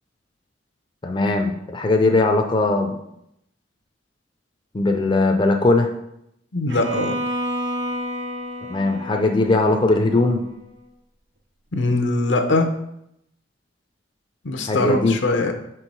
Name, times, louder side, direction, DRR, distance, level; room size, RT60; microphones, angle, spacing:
voice 1, 1.0-3.0 4.7-5.9 8.7-10.5 14.7-15.2, left 2 dB, 25° left, 4 dB, 0.4 m, -19 dB
voice 2, 6.5-7.2 11.7-12.7 14.4-15.5, left 2 dB, 80° left, 5 dB, 0.7 m, -21 dB
Bowed string instrument, 6.7-10.7, equal, 85° right, 0.8 m, -30 dB
4.5 x 4.0 x 5.3 m, 0.78 s
head